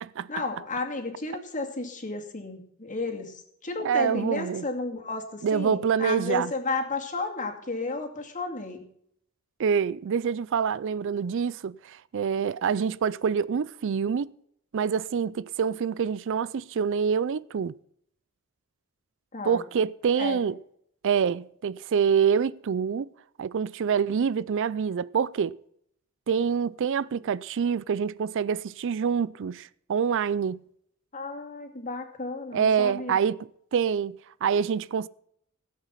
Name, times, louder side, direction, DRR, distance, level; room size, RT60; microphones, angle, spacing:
voice 1, 0.3-8.8 19.3-19.6 20.2-20.4 31.1-33.2, left 3 dB, 35° left, 2.5 m, -33 dB
voice 2, 3.8-4.7 5.4-6.5 9.6-14.3 14.7-17.7 19.4-20.6 21.0-23.1 23.4-25.6 26.3-30.6 32.5-33.4 33.7-35.1, right 6 dB, 60° right, 0.4 m, -26 dB
17.5 x 8.2 x 5.7 m
head